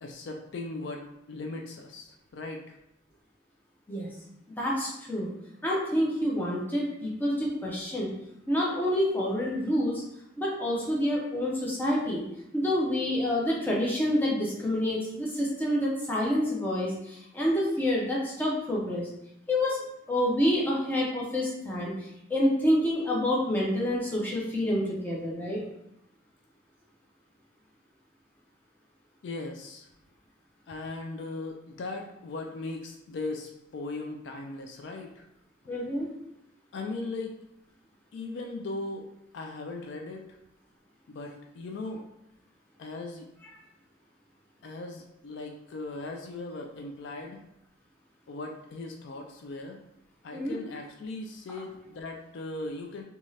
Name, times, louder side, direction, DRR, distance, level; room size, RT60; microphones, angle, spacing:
voice 1, 0.0-2.8 29.2-29.9 30.7-35.3 36.7-37.3 38.1-39.0 39.3-40.4 41.1-42.0 42.8-43.3 44.6-47.4 48.3-49.8 50.2-53.0, left 2 dB, 60° left, 2 dB, 0.3 m, -38 dB
voice 2, 4.5-5.3 5.6-8.1 8.5-9.9 10.4-12.2 12.5-19.1 19.5-19.8 20.1-25.6 35.7-36.1 50.3-50.6, left 1 dB, 10° left, -4 dB, 0.5 m, -28 dB
2.6 x 2.3 x 3.1 m, 0.82 s
head